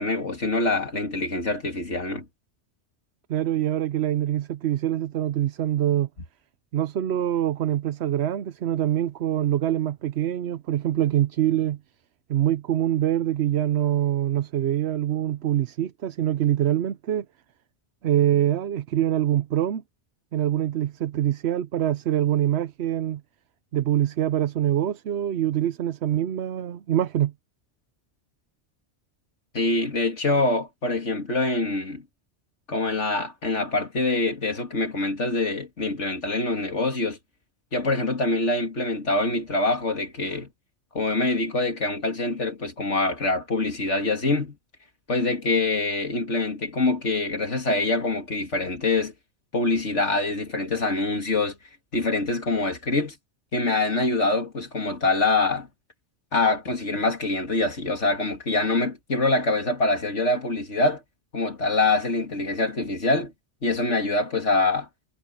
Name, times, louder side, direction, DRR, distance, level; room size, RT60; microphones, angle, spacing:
voice 1, 0.0-2.2 29.5-32.0 32.7-37.2 37.7-40.5 40.9-44.6 45.1-49.1 49.5-51.6 51.9-53.1 53.5-55.7 56.3-61.0 61.3-63.3 63.6-64.9, left 2 dB, 85° left, 3.2 m, -25 dB
voice 2, 3.3-6.1 6.7-11.8 12.3-17.3 18.0-19.8 20.3-23.2 23.7-27.3, right 11 dB, 70° right, 0.9 m, -24 dB
omnidirectional pair, 1.2 m